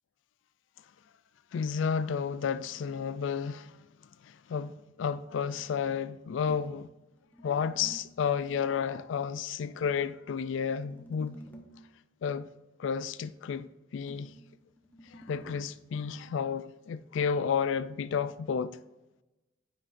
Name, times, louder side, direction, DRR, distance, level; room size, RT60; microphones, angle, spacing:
voice 1, 1.5-3.8 4.2-6.9 7.4-11.4 12.2-12.5 12.8-13.7 13.9-14.3 15.1-18.7, left 6 dB, 80° left, 0.3 m, -31 dB
sound 1, 6.5-8.3 10.0-11.9 14.1-15.6, equal, 10° left, 0.9 m, -52 dB
9.5 x 6.2 x 2.5 m
head